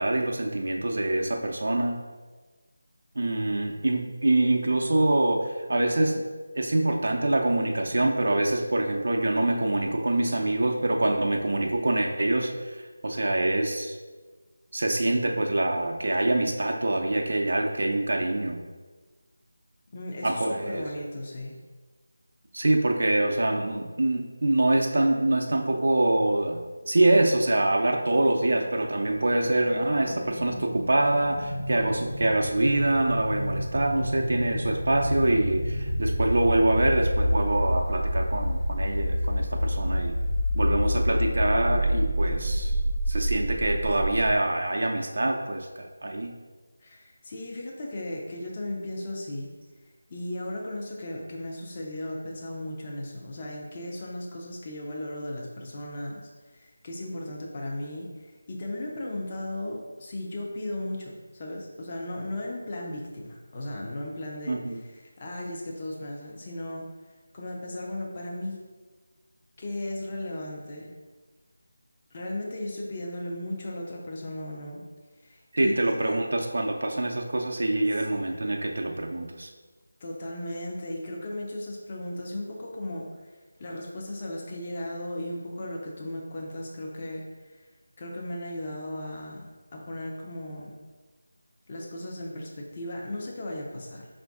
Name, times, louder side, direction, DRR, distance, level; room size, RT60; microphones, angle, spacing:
voice 1, 0.0-2.0 3.2-6.2 6.6-14.0 14.7-18.6 20.2-20.8 22.5-40.2 40.5-42.7 43.1-46.3 64.5-64.8 75.5-79.5, right 2 dB, 60° right, 2 dB, 0.4 m, -25 dB
voice 2, 19.9-21.6 46.8-49.5 50.1-66.9 67.3-68.7 69.6-70.9 72.1-74.8 75.2-76.2 77.9-78.2 80.0-87.7 88.0-90.8 91.7-94.1, left 1 dB, 30° left, -2 dB, 0.6 m, -36 dB
sound 1, 28.5-44.3, equal, 70° left, 0.6 m, -28 dB
5.1 x 2.5 x 3.5 m, 1.3 s
figure-of-eight pair, 165°, 0 cm